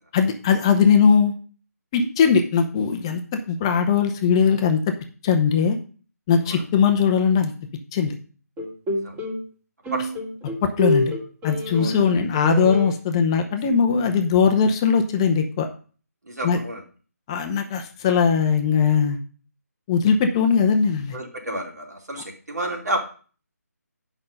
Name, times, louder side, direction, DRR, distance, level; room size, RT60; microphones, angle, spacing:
voice 1, 0.1-1.3 1.9-3.2 3.5-4.8 5.2-5.8 6.3-7.5 7.9-8.2 10.6-11.1 11.4-15.7 16.4-16.6 17.3-19.2 19.9-21.2, left 6 dB, 15° left, 5 dB, 0.7 m, -19 dB
sound 1, 8.6-9.4 9.8-12.1 12.3-12.9, left 1 dB, 15° right, 2.0 m, -26 dB
voice 2, 16.2-16.8 21.1-23.0, right 1 dB, 75° right, 1 dB, 2.9 m, -30 dB
8.6 x 5.5 x 5.4 m, 0.40 s
figure-of-eight pair, 160°, 9 cm